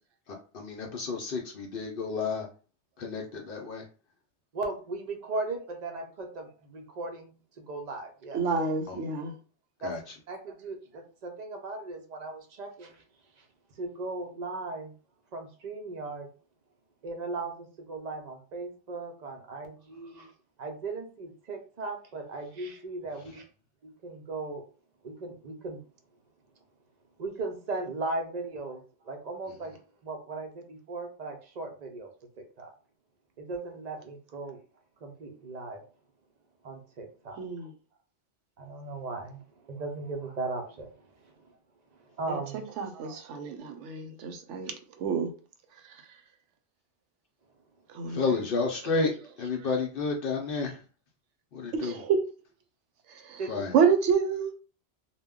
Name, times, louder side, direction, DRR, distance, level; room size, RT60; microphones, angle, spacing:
voice 1, 0.5-2.5 3.0-3.8 8.9-9.0 9.8-10.0 48.1-49.1 49.4-50.8 51.5-52.0 53.5-53.7, left 4 dB, 60° left, 0.7 m, -30 dB
voice 2, 4.5-8.4 9.8-9.9 10.3-13.0 13.4-13.5 13.8-14.9 15.3-16.3 17.0-20.3 20.6-23.4 24.0-24.6 25.0-25.8 27.2-32.1 32.4-32.7 33.4-34.6 35.0-35.8 36.6-37.7 38.6-41.3 42.2-42.7 53.4-53.5, right 3 dB, 45° right, 0.6 m, -37 dB
voice 3, 8.3-9.3 37.4-37.7 42.3-44.7 45.0-45.3 47.9-48.4 51.7-52.2 53.3-54.5, right 6 dB, 90° right, 0.9 m, -28 dB
2.2 x 2.1 x 3.5 m
omnidirectional pair, 1.2 m